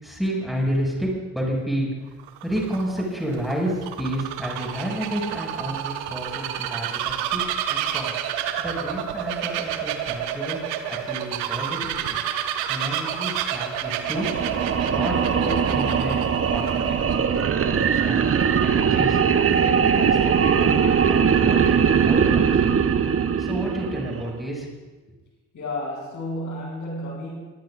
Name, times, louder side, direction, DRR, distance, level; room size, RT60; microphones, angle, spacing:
voice 1, 0.0-1.9 2.4-8.1 8.6-10.6 10.9-12.2 12.6-14.3 14.8-16.2 16.5-19.2 19.6-22.5 23.4-24.7, equal, ahead, -2 dB, 6.5 m, -30 dB
Bird vocalization bird call bird song, 2.1-17.2, right 10 dB, 70° right, 1.2 m, -29 dB
sound 1, 14.0-24.4, right 7 dB, 35° right, 1.0 m, -21 dB
voice 2, 25.5-27.4, left 1 dB, 50° left, -2 dB, 6.7 m, -31 dB
23.5 x 19.0 x 2.6 m, 1.2 s
figure-of-eight pair, 40°, 39 cm